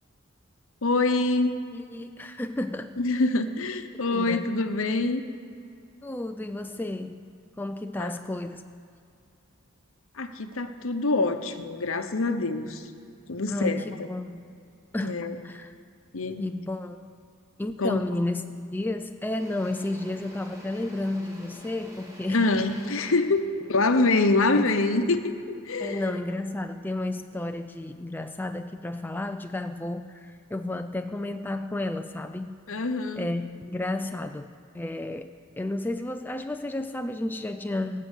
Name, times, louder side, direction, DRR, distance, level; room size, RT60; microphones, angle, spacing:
voice 1, 0.8-1.6 3.0-5.2 8.0-8.1 10.1-12.9 13.3-14.1 15.0-15.4 16.1-16.5 17.8-18.1 22.3-26.0 32.7-33.3, left 2 dB, 65° left, 9 dB, 0.9 m, -25 dB
voice 2, 1.7-3.0 4.1-4.5 6.0-7.3 7.6-8.6 13.5-14.5 14.9-15.7 16.4-17.0 17.6-18.4 18.7-22.5 24.5-24.7 25.8-32.6 33.2-38.0, left 2 dB, 10° left, 7 dB, 0.3 m, -32 dB
Engine / Drill, 18.4-18.6 18.9-25.1, left 1 dB, 15° right, 1.9 m, -49 dB
18.0 x 7.6 x 8.1 m, 2.4 s
head